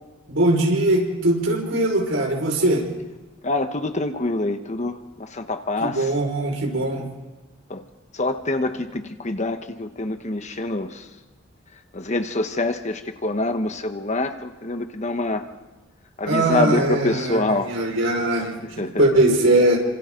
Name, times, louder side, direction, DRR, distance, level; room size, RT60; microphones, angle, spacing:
voice 1, 0.3-2.9 5.8-7.1 16.3-18.6 19.0-19.8, right 1 dB, 75° right, 0 dB, 5.6 m, -20 dB
voice 2, 3.4-6.1 7.7-7.8 8.1-11.1 11.9-15.5 16.2-17.7 18.6-19.0, left 2 dB, 35° left, 7 dB, 1.3 m, -26 dB
29.0 x 26.0 x 3.9 m, 1.2 s
head